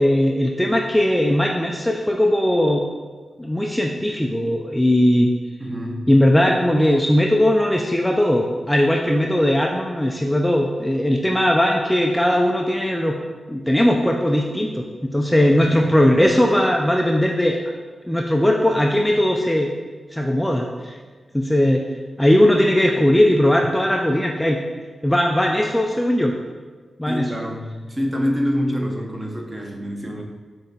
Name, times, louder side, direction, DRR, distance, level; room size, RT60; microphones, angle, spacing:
voice 1, 0.0-2.8 3.4-5.3 6.1-13.1 13.5-17.6 18.1-19.7 20.1-21.0 21.3-21.8 22.2-24.6 25.0-26.3 27.0-27.2, left 1 dB, 10° left, 0 dB, 0.3 m, -18 dB
voice 2, 5.6-6.1 15.6-15.8 27.1-30.2, equal, 20° right, 0 dB, 0.7 m, -26 dB
5.6 x 2.8 x 2.8 m, 1.5 s
cardioid pair, 65°, 0 cm